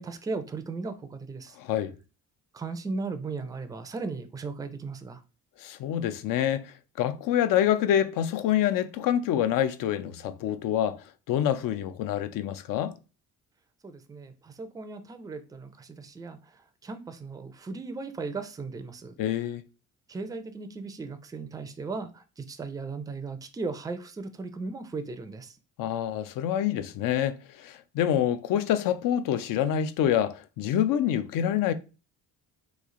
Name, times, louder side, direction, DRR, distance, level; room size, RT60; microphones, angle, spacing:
voice 1, 0.0-1.6 2.5-5.2 13.8-19.2 20.1-25.6, right 4 dB, 10° right, 0.3 m, -37 dB
voice 2, 1.6-1.9 5.6-11.0 11.3-12.9 19.2-19.6 25.8-31.7, left 10 dB, 75° left, 0.5 m, -26 dB
3.1 x 2.4 x 3.6 m
cardioid pair, 110°, 33 cm